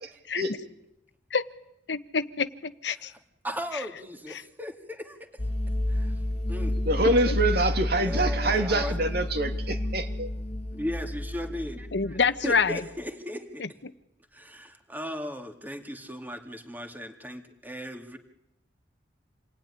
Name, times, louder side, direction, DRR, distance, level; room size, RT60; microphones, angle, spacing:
voice 1, 1.9-3.1 4.3-4.4 7.3-7.4 11.9-12.8, left 5 dB, 65° left, 13 dB, 1.0 m, -27 dB
voice 2, 3.4-5.4 5.9-6.2 6.5-7.3 8.1-9.0 10.7-12.2 12.4-13.7 14.3-18.2, equal, 10° right, 6 dB, 2.3 m, -37 dB
sound 1, 5.4-12.8, left 1 dB, 35° left, 1.5 m, -30 dB
voice 3, 6.9-10.3, right 2 dB, 60° right, 6 dB, 2.7 m, -25 dB
28.0 x 20.0 x 10.0 m, 0.86 s
head